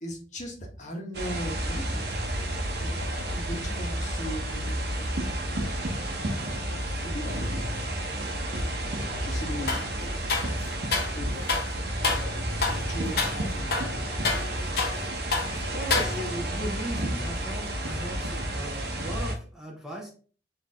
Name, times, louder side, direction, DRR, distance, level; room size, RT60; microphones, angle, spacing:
voice 1, 0.0-2.5 2.8-6.5 7.0-8.4 9.0-10.3 10.9-11.6 12.0-14.4, equal, 45° left, 1 dB, 1.2 m, -40 dB
sound 1, 1.1-19.3, right 1 dB, 65° right, 0.9 m, -31 dB
sound 2, 9.7-9.9 10.3-11.2 11.5-11.7 12.0-12.3 12.6-12.9 13.2-13.4 13.7-15.0 15.3-15.5 15.9-16.5, left 4 dB, 60° left, 0.9 m, -28 dB
voice 2, 15.5-20.1, equal, ahead, -2 dB, 0.8 m, -37 dB
4.3 x 2.9 x 3.6 m, 0.39 s
head